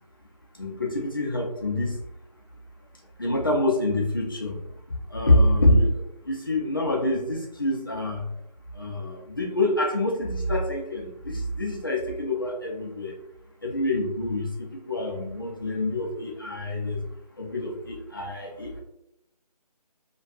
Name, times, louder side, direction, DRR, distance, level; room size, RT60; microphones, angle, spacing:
voice 1, 0.6-2.0 3.2-4.6 5.1-8.2 8.7-13.1 13.6-17.0 17.4-18.8, left 1 dB, 35° left, -1 dB, 0.4 m, -26 dB
2.6 x 2.2 x 2.3 m, 0.83 s
figure-of-eight pair, 165°, 21 cm